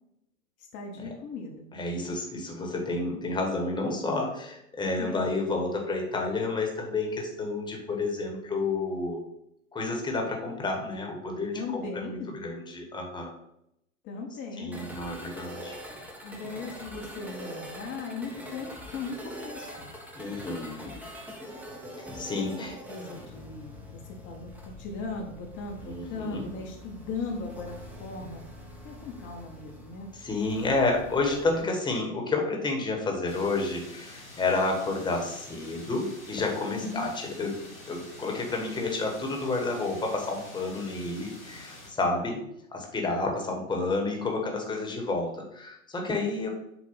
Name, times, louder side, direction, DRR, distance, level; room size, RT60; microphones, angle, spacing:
voice 1, 0.6-1.7 5.0-5.3 11.5-12.4 14.0-15.0 16.2-19.9 22.3-22.5 22.9-28.4 28.8-30.1 36.7-37.1 42.0-42.3, left 4 dB, 30° left, 1 dB, 0.9 m, -38 dB
voice 2, 1.7-9.2 9.7-13.3 14.6-15.8 20.1-20.9 21.9-22.7 25.8-26.4 30.2-37.6 37.8-42.4 42.7-46.5, left 3 dB, 10° left, 1 dB, 1.2 m, -30 dB
sound 1, 14.7-31.6, equal, 5° right, 0.8 m, -44 dB
sound 2, 33.3-41.9, left 1 dB, 90° left, 1.9 m, -47 dB
7.0 x 2.4 x 5.5 m, 0.78 s
figure-of-eight pair, 100°, 40 cm